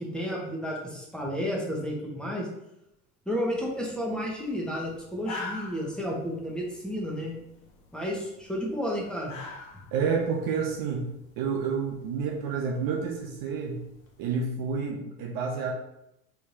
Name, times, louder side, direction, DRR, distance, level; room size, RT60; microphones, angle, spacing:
voice 1, 0.0-2.5 3.2-7.4 7.9-9.3, equal, ahead, -3 dB, 1.2 m, -32 dB
sound 1, 3.5-14.4, left 3 dB, 60° left, 0.9 m, -47 dB
voice 2, 9.9-11.1 11.4-13.8 14.2-15.7, right 5 dB, 50° right, 1 dB, 0.7 m, -29 dB
4.4 x 3.5 x 2.7 m, 0.84 s
hypercardioid pair, 80°, 45 cm